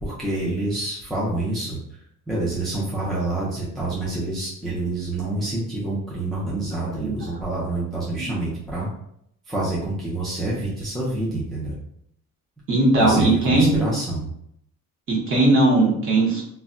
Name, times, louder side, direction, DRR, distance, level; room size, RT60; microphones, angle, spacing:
voice 1, 0.0-1.8 2.3-8.9 9.5-11.7 13.0-14.3, right 2 dB, ahead, -7 dB, 0.4 m, -27 dB
voice 2, 12.7-13.9 15.1-16.4, right 2 dB, 40° right, -3 dB, 0.8 m, -19 dB
2.2 x 2.2 x 3.6 m, 0.73 s
cardioid pair, 170°, 32 cm